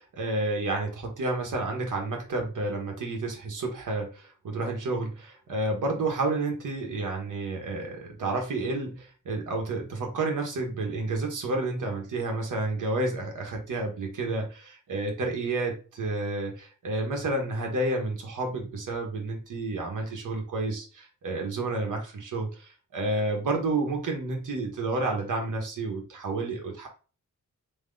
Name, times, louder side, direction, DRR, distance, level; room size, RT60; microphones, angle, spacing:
voice 1, 0.0-26.9, right 2 dB, 85° right, 1 dB, 1.3 m, -30 dB
3.6 x 3.0 x 3.8 m, 0.36 s
wide cardioid pair, 115°, 31 cm